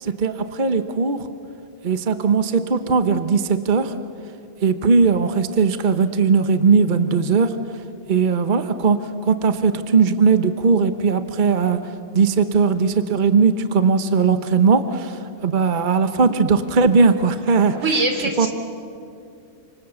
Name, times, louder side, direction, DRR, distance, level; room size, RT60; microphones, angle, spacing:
voice 1, 0.0-1.3 1.8-3.9 4.6-7.5 8.1-11.8 12.1-17.8 18.4-18.5, right 5 dB, 40° right, 9 dB, 1.1 m, -18 dB
voice 2, 17.7-18.5, right 2 dB, 85° right, 4 dB, 3.5 m, -22 dB
30.0 x 26.0 x 7.1 m, 2.4 s
omnidirectional pair, 1.3 m